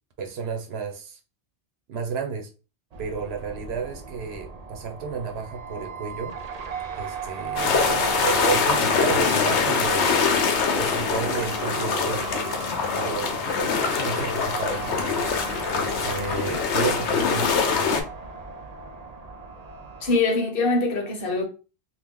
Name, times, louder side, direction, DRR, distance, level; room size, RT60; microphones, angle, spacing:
voice 1, 0.2-1.2 1.9-2.5 3.0-6.3 6.9-10.3 10.7-12.3 12.9-15.3 15.7-18.0, right 5 dB, 70° right, 1.0 m, -32 dB
sound 1, 2.9-20.2, right 4 dB, 50° right, 0.5 m, -36 dB
sound 2, 7.6-18.0, left 5 dB, 80° left, 0.9 m, -24 dB
voice 2, 20.0-21.4, left 3 dB, 60° left, 1.0 m, -23 dB
3.0 x 2.3 x 3.6 m
omnidirectional pair, 1.1 m